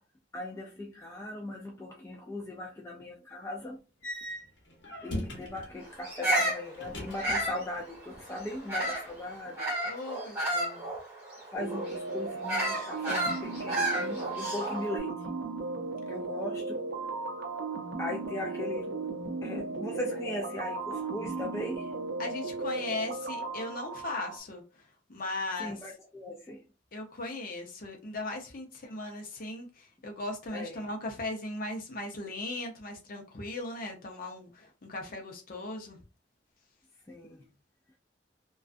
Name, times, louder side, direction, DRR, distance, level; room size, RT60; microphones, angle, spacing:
voice 1, 0.3-3.8 5.0-9.7 11.5-15.3 16.1-16.8 18.0-19.0 19.4-21.9 25.6-26.7 30.5-30.8 37.1-37.4, left 1 dB, 15° left, 0.3 m, -38 dB
sound 1, 4.0-5.8 6.7-7.8 8.1-8.9, left 1 dB, 80° left, 0.9 m, -40 dB
Bird vocalization bird call bird song, 6.0-9.1 9.6-14.9, right 1 dB, 15° right, 1.2 m, -32 dB
voice 2, 9.8-10.9 22.2-24.8 25.1-25.8 26.9-36.0, left 2 dB, 50° left, 0.6 m, -38 dB
sound 2, 11.5-24.4, right 3 dB, 60° right, 0.4 m, -36 dB
2.4 x 2.3 x 2.4 m
head